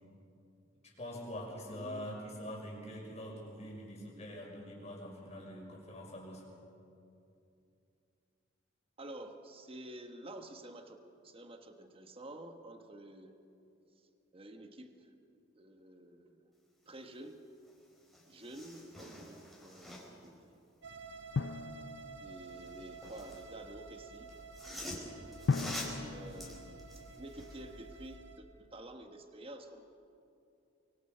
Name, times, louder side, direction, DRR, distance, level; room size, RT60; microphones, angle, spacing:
voice 1, 0.8-6.4, equal, 35° left, -2 dB, 5.9 m, -44 dB
voice 2, 1.7-2.1 9.0-13.3 14.3-15.1 15.5-16.5 16.9-17.4 18.3-20.6 22.2-24.3 25.9-26.9 27.2-29.8, right 1 dB, 30° right, 6 dB, 1.3 m, -50 dB
sound 1, 17.7-17.8 18.0-20.3 22.4-23.5 24.3-27.6 28.1-28.2, left 1 dB, ahead, 4.4 m, -46 dB
sound 2, 20.8-28.4, right 4 dB, 65° right, 1.5 m, -51 dB
Drum, 21.4-22.9 25.5-27.6, left 4 dB, 65° left, 0.5 m, -37 dB
24.5 x 24.0 x 5.6 m, 2.7 s
head